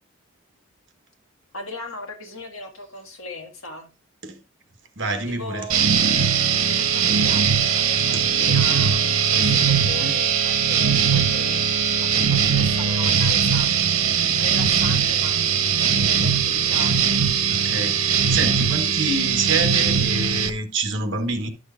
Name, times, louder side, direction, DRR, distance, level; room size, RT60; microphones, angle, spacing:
voice 1, 1.5-3.9 5.2-5.9 6.7-13.7 14.4-17.0, left 3 dB, 75° left, 1.8 m, -38 dB
voice 2, 5.0-5.7 8.1-8.2 10.0-10.2 17.5-21.5, right 3 dB, 55° right, 1.2 m, -27 dB
sound 1, 5.7-20.5, right 7 dB, 90° right, 0.9 m, -20 dB
11.0 x 6.4 x 2.5 m
head